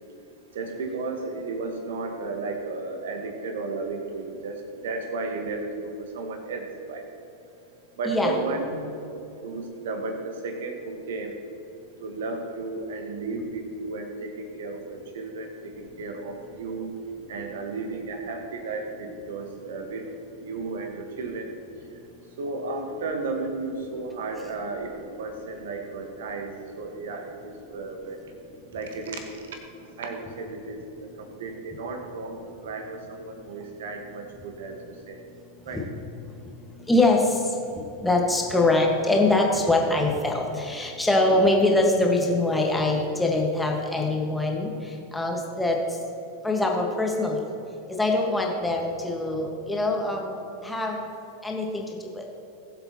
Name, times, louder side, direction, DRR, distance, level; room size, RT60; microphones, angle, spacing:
voice 1, 0.5-7.0 8.0-9.0 9.4-11.4 12.0-16.9 17.3-20.0 20.4-21.5 22.4-28.2 28.7-29.2 30.0-35.2 35.6-35.8, right 3 dB, 60° right, 4 dB, 1.6 m, -34 dB
voice 2, 8.0-8.3 35.7-35.8 36.9-37.2 38.0-44.7 45.1-45.8 46.4-47.4 48.0-51.0 51.4-51.8 52.1-52.2, left 2 dB, 5° left, 0 dB, 1.8 m, -23 dB
20.0 x 7.7 x 3.1 m, 2.9 s
figure-of-eight pair, 90°, 0 cm